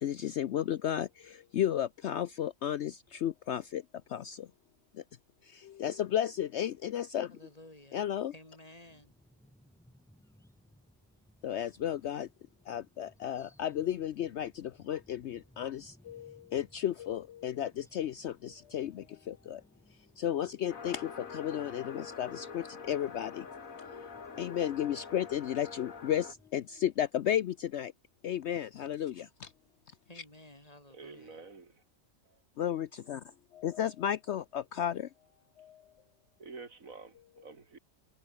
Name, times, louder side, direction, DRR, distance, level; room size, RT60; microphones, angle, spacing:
voice 1, 0.0-3.8 4.1-4.5 4.9-5.0 5.4-7.3 7.9-8.3 11.4-12.3 12.7-19.6 20.2-23.5 24.4-27.9 28.2-29.5 32.6-33.2 33.5-35.1 35.6-35.8, left 10 dB, 65° left, 0.9 m, -33 dB
voice 2, 7.3-8.1 8.3-9.1 30.1-31.4, left 1 dB, 25° left, 4.4 m, -54 dB
sound 1, 8.8-26.5, equal, ahead, 4.5 m, -64 dB
sound 2, 20.7-26.3, left 5 dB, 90° left, 2.4 m, -45 dB
voice 3, 30.9-31.7 32.2-32.4 36.4-37.8, right 4 dB, 80° right, 3.1 m, -49 dB
omnidirectional pair, 1.4 m